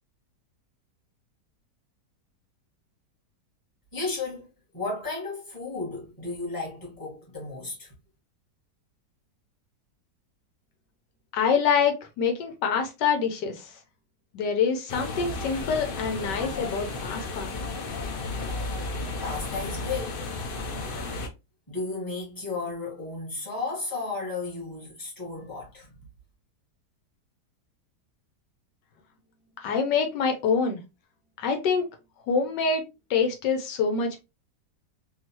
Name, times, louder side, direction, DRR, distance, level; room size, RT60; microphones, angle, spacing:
voice 1, 3.9-4.5 4.7-7.9 19.2-20.3 21.7-25.9, left 3 dB, 15° left, 1.4 m, -34 dB
voice 2, 11.3-13.8 14.3-17.6 29.6-30.8 31.4-31.9 32.3-32.8 33.1-34.2, left 5 dB, 80° left, 1.4 m, -26 dB
sound 1, 14.9-21.3, left 3 dB, 65° left, 0.5 m, -33 dB
3.7 x 2.7 x 2.9 m
omnidirectional pair, 1.8 m